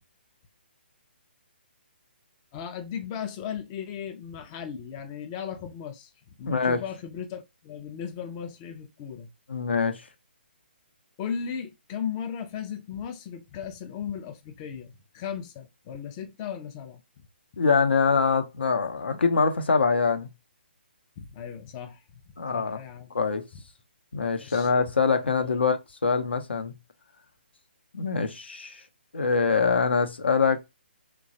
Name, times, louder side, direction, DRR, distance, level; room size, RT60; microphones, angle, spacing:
voice 1, 2.5-6.1 6.4-9.3 11.2-17.0 21.2-23.1 24.4-24.7 25.1-25.5, left 8 dB, 25° left, 0.4 m, -36 dB
voice 2, 6.5-6.8 9.5-10.0 17.6-20.3 22.4-22.8 23.1-23.4 24.1-26.7 27.9-28.8 29.1-30.6, left 5 dB, 75° left, 0.6 m, -24 dB
3.0 x 2.3 x 2.7 m
figure-of-eight pair, 140°, 6 cm